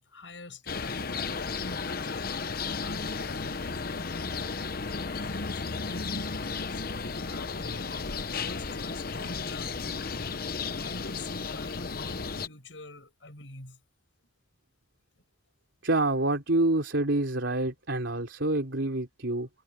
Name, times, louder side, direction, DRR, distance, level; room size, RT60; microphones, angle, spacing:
voice 1, 0.0-4.5 5.1-6.8 7.2-9.7 10.0-10.3 10.6-13.8, left 2 dB, 75° left, 7.7 m, -46 dB
sound 1, 0.7-12.5, left 4 dB, 50° left, 0.9 m, -34 dB
voice 2, 15.8-19.5, right 2 dB, 80° right, 3.3 m, -27 dB
head